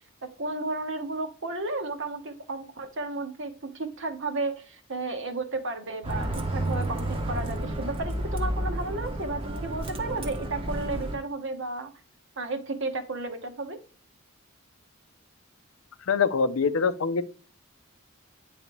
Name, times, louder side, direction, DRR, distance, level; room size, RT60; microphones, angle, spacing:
voice 1, 0.4-11.9 12.4-13.8, right 2 dB, 60° right, 1.0 m, -33 dB
Bus, 6.0-11.2, right 1 dB, 25° right, 0.8 m, -31 dB
voice 2, 16.1-17.2, left 5 dB, 70° left, 0.5 m, -24 dB
9.4 x 3.3 x 3.0 m
head